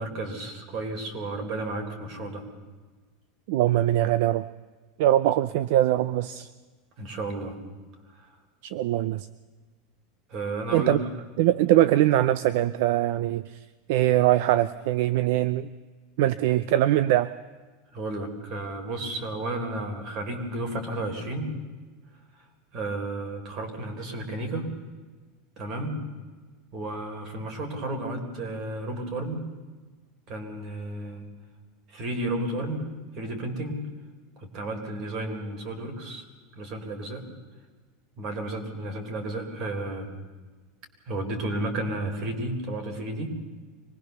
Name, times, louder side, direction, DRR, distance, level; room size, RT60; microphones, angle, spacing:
voice 1, 0.0-2.4 7.0-7.6 8.1-8.4 10.3-11.0 17.9-21.5 22.3-22.5 22.7-24.7 25.6-26.0 26.7-29.4 30.3-31.3 31.9-32.8 33.1-33.8 34.4-36.3 36.6-37.2 38.2-40.1 41.1-43.3, right 2 dB, 35° right, 5 dB, 3.9 m, -32 dB
voice 2, 3.5-4.4 5.0-6.5 8.6-9.3 10.7-11.0 11.4-13.6 13.9-15.7 16.2-17.3, right 13 dB, 60° right, 16 dB, 0.6 m, -22 dB
24.5 x 20.0 x 6.9 m, 1.4 s
supercardioid pair, 170°, 0 cm